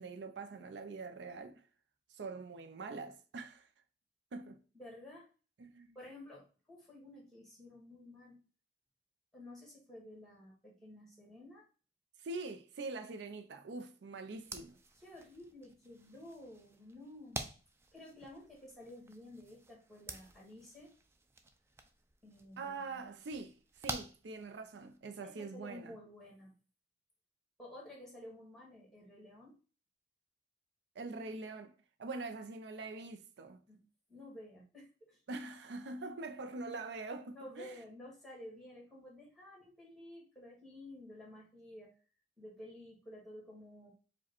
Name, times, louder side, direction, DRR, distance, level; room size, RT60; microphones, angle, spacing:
voice 1, 0.0-1.6 2.1-3.7 4.3-4.6 5.6-6.0 12.2-14.8 22.6-23.5 23.8-25.9 31.0-31.7 32.0-33.6 35.3-37.7, right 3 dB, 80° right, 0.5 m, -44 dB
voice 2, 4.7-5.3 5.9-8.4 9.3-11.6 15.0-17.5 17.9-20.9 22.2-23.2 25.2-26.5 27.6-29.6 33.7-33.8 34.1-35.2 37.3-41.9 42.4-43.9, left 1 dB, ahead, 1.7 m, -52 dB
sound 1, 14.3-25.0, right 2 dB, 15° right, 0.4 m, -49 dB
4.8 x 2.2 x 4.3 m
head